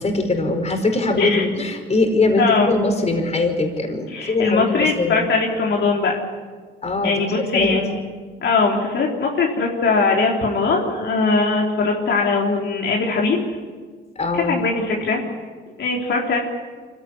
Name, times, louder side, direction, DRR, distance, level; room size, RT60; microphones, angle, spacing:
voice 1, 0.0-5.2 6.8-7.2 7.5-7.7 14.1-14.6, left 2 dB, 35° left, 4 dB, 5.0 m, -21 dB
voice 2, 2.4-2.7 4.1-6.2 7.0-7.9 8.4-13.4 14.4-15.2 15.8-16.4, left 4 dB, 65° left, -2 dB, 3.8 m, -20 dB
25.0 x 16.5 x 9.8 m, 1.5 s
cardioid pair, 90°, 20 cm